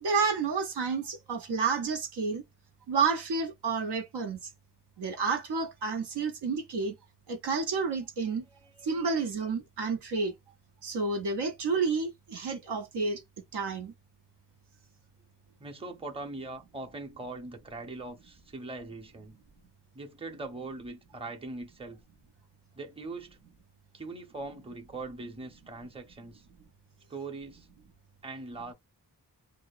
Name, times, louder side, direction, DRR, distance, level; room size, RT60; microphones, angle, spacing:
voice 1, 0.0-2.4 2.9-4.4 5.0-6.9 7.3-8.4 8.8-10.3 10.8-13.2 13.5-13.9, right 4 dB, 80° right, 0.6 m, -30 dB
voice 2, 8.2-9.3 15.6-19.4 19.9-22.0 22.7-23.4 23.9-26.5 27.1-27.7 28.2-28.7, right 3 dB, 15° right, 0.6 m, -41 dB
2.7 x 2.0 x 2.3 m
cardioid pair, 50°, 40 cm